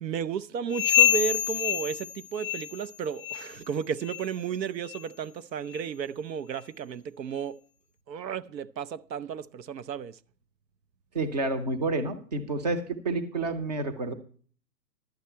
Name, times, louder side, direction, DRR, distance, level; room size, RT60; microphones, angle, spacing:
voice 1, 0.0-7.6 8.1-10.2, right 7 dB, 90° right, 0.8 m, -33 dB
sound 1, 0.7-2.9 3.2-3.6 4.0-4.3 4.9-5.0 5.7-5.8 6.6-6.7, left 13 dB, 35° left, 0.6 m, -26 dB
voice 2, 11.1-14.1, right 2 dB, 25° right, 0.7 m, -29 dB
12.0 x 8.5 x 4.4 m
hypercardioid pair, 170°, 49 cm